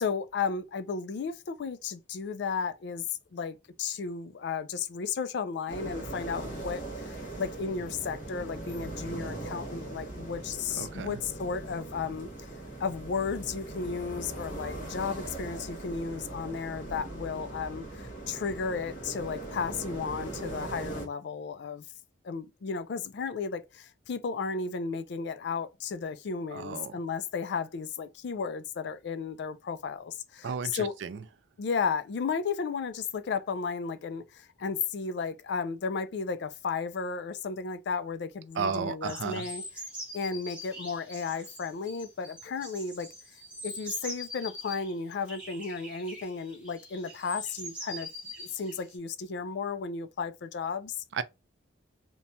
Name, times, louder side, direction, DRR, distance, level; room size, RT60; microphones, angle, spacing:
voice 1, 0.0-12.3 12.8-21.8 22.2-30.9 31.6-39.6 40.1-43.1 43.6-48.1 48.4-51.0, left 5 dB, 60° left, 0.3 m, -34 dB
sound 1, 5.7-21.1, right 2 dB, 45° left, 1.0 m, -40 dB
voice 2, 10.7-11.2 26.5-26.9 30.4-31.2 38.6-39.4 51.1-51.2, right 6 dB, 65° right, 0.3 m, -33 dB
sound 2, 39.1-44.9 45.3-49.0, equal, 5° right, 0.8 m, -43 dB
3.0 x 2.2 x 2.6 m
head